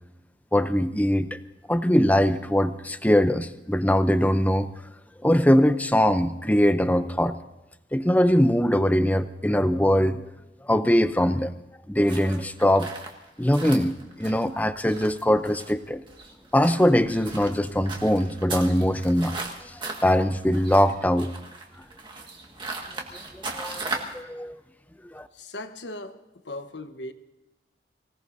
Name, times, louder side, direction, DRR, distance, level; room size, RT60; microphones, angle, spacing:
voice 1, 0.5-1.4 1.7-4.7 5.2-7.3 7.9-10.3 10.6-11.5 11.9-12.9 13.4-16.0 16.5-21.3 23.3-24.6 25.1-25.3, equal, 10° left, 11 dB, 0.5 m, -22 dB
sound 1, 12.1-24.2, right 3 dB, 25° right, 1.7 m, -38 dB
voice 2, 25.3-26.2 26.4-27.1, left 1 dB, 80° left, 8 dB, 1.1 m, -37 dB
24.5 x 17.5 x 2.7 m, 1.0 s
head